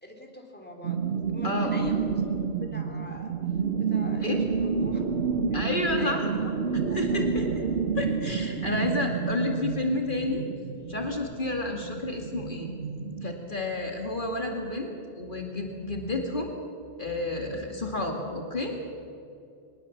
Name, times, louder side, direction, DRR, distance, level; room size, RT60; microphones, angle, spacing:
voice 1, 0.0-3.3 3.8-5.0 5.5-7.2, left 1 dB, 10° left, 1 dB, 3.0 m, -43 dB
sound 1, 0.8-13.3, right 5 dB, 80° right, 1.4 m, -29 dB
voice 2, 1.4-1.8 4.2-4.4 5.5-6.5 6.9-7.5 8.0-10.4 10.9-12.7 13.2-16.6 17.0-18.8, left 2 dB, 50° left, 2 dB, 2.5 m, -30 dB
23.0 x 20.5 x 7.3 m, 2.6 s
omnidirectional pair, 1.1 m